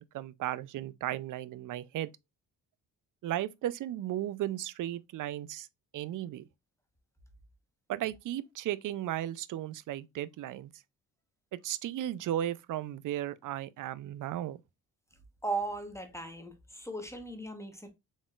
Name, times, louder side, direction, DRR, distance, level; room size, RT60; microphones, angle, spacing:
voice 1, 0.0-2.1 3.2-5.7 5.9-6.5 7.9-10.7 11.5-14.6, right 12 dB, 55° right, 0.4 m, -35 dB
voice 2, 15.4-17.9, right 3 dB, 5° left, 1.0 m, -37 dB
4.1 x 3.7 x 2.3 m
cardioid pair, 95°, 39 cm